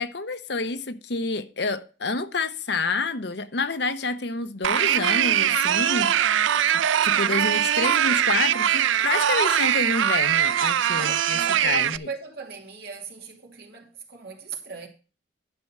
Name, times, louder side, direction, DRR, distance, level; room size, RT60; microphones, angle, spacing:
voice 1, 0.0-6.4 6.7-12.1, left 3 dB, 60° left, 0.8 m, -28 dB
sound 1, 4.6-12.0, right 10 dB, 80° right, 0.4 m, -22 dB
voice 2, 10.9-14.9, right 5 dB, 55° right, 2.6 m, -39 dB
11.0 x 5.5 x 5.9 m
head